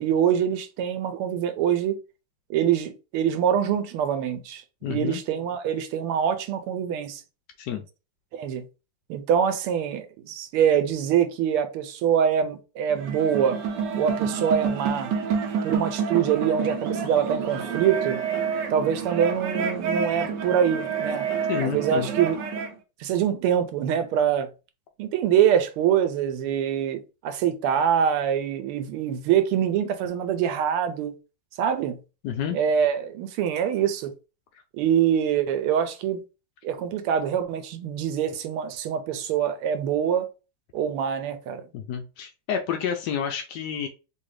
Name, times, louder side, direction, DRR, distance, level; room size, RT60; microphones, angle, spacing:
voice 1, 0.0-2.0 2.5-4.6 4.9-7.2 8.3-8.6 9.1-13.6 14.0-15.1 15.6-18.2 18.7-21.3 21.6-22.4 23.0-24.5 25.0-31.1 31.6-31.9 32.5-34.1 34.8-36.2 36.6-40.3 40.7-41.6, right 8 dB, 85° right, 1.5 m, -24 dB
voice 2, 4.8-5.2 7.6-7.8 21.5-22.1 32.2-32.6 41.7-43.9, left 8 dB, 85° left, 0.9 m, -29 dB
sound 1, 12.9-22.7, right 6 dB, 65° right, 1.1 m, -28 dB
3.8 x 2.7 x 3.1 m
omnidirectional pair, 2.4 m